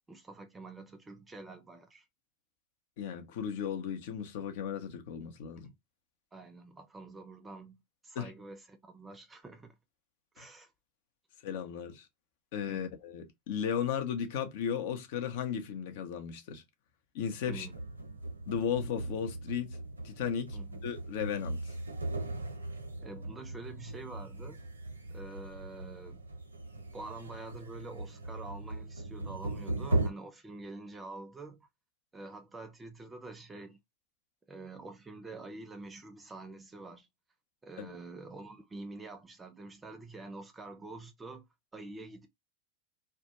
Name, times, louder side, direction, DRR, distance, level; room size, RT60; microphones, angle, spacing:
voice 1, 0.1-2.1 5.6-5.7 6.3-9.7 10.3-10.7 12.7-12.9 17.5-17.7 20.5-20.8 23.0-24.6 25.1-26.2 26.9-31.7 32.1-33.8 34.5-37.1 37.6-41.5 41.7-42.3, right 3 dB, 15° right, 0.5 m, -47 dB
voice 2, 3.0-5.7 8.1-8.3 10.4-10.5 11.4-12.1 12.5-16.6 17.1-17.7 18.5-19.8 20.0-20.6 20.8-21.7 37.8-37.9, left 8 dB, 60° left, 0.6 m, -35 dB
sound 1, 17.5-30.1, right 2 dB, 90° right, 0.5 m, -38 dB
2.2 x 2.2 x 2.8 m
hypercardioid pair, 90°, 0 cm